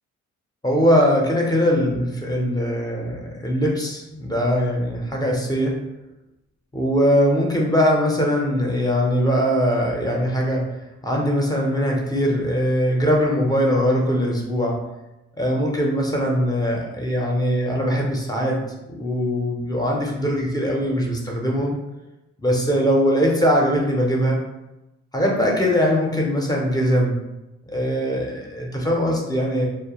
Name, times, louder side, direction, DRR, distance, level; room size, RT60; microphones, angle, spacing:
voice 1, 0.6-5.8 6.7-10.7 11.0-14.8 15.4-18.6 18.9-21.7 22.4-24.4 25.1-27.2 27.7-29.7, equal, 15° left, -1 dB, 0.6 m, -21 dB
2.3 x 2.1 x 2.9 m, 0.96 s
cardioid pair, 90°, 30 cm